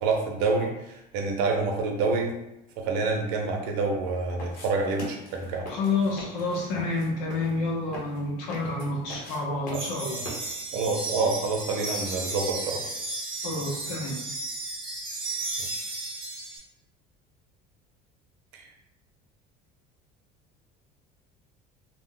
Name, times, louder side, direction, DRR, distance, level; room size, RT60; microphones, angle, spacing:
voice 1, 0.0-0.7 1.1-2.3 2.8-5.7 9.7-9.8 10.7-12.8 15.7-15.8 18.5-18.6, right 3 dB, 80° right, 2 dB, 0.7 m, -27 dB
sound 1, 4.4-10.7, left 1 dB, 55° left, 0.9 m, -43 dB
voice 2, 5.7-10.3 13.4-14.2, left 3 dB, 85° left, -2 dB, 0.9 m, -29 dB
sound 2, 9.7-16.6, right 2 dB, 30° right, 0.7 m, -34 dB
2.4 x 2.1 x 3.7 m, 0.89 s
cardioid pair, 155°, 18 cm